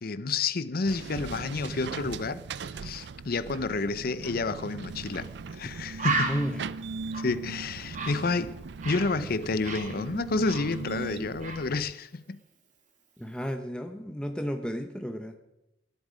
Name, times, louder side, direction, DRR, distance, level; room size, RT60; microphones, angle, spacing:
voice 1, 0.0-6.4 7.2-8.6 8.8-12.4, left 3 dB, 55° left, 0.7 m, -30 dB
sound 1, 0.9-11.9, right 4 dB, 70° right, 0.5 m, -39 dB
Bird, 5.1-5.3 5.6-5.7 6.0-9.2 9.4-11.1 11.4-11.7, right 3 dB, 45° right, 2.5 m, -34 dB
voice 2, 6.3-6.7 13.2-15.3, equal, 5° left, 0.9 m, -33 dB
20.0 x 11.5 x 5.2 m
head